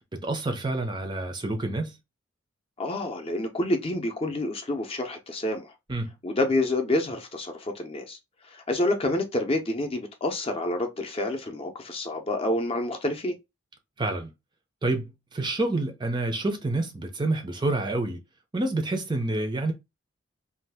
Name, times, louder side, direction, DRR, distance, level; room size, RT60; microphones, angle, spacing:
voice 1, 0.2-2.0 5.9-6.1 14.0-14.3 14.8-18.2 18.5-19.7, right 2 dB, 25° right, 0.5 m, -28 dB
voice 2, 2.8-5.7 6.2-8.2 8.5-13.4, left 1 dB, 30° left, 0.6 m, -28 dB
2.6 x 2.4 x 3.3 m
head